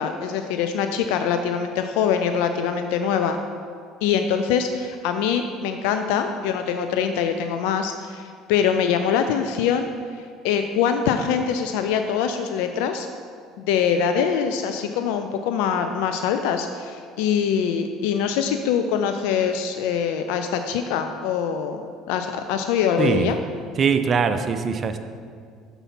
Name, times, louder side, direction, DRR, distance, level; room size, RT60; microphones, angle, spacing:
voice 1, 0.0-3.4 4.0-13.1 13.6-23.4, left 7 dB, 75° left, 7 dB, 0.3 m, -24 dB
voice 2, 23.0-23.3 23.8-25.0, right 6 dB, 40° right, 9 dB, 0.5 m, -22 dB
5.6 x 4.0 x 5.8 m, 2.1 s
hypercardioid pair, 75°, 0 cm